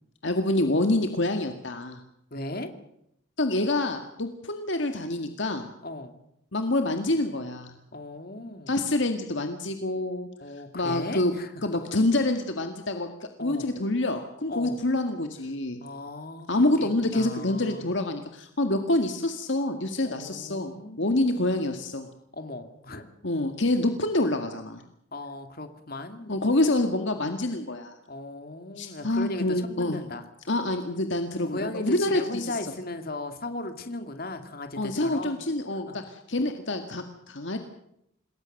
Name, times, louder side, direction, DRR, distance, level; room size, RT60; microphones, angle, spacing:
voice 1, 0.2-2.0 3.4-5.7 6.5-7.7 8.7-10.3 10.7-11.3 11.6-13.1 13.4-15.8 16.5-22.1 23.2-24.8 26.3-27.9 28.8-30.0 30.5-32.6 34.8-37.6, left 2 dB, 65° left, 6 dB, 1.9 m, -27 dB
voice 2, 2.3-2.7 5.8-6.2 7.9-8.8 10.4-12.0 13.4-13.7 14.5-14.8 15.8-17.9 20.0-21.5 22.3-23.1 25.1-26.5 28.1-30.2 31.4-35.4 35.7-36.0, left 2 dB, 45° left, 7 dB, 2.6 m, -37 dB
27.5 x 20.5 x 6.6 m, 0.76 s
head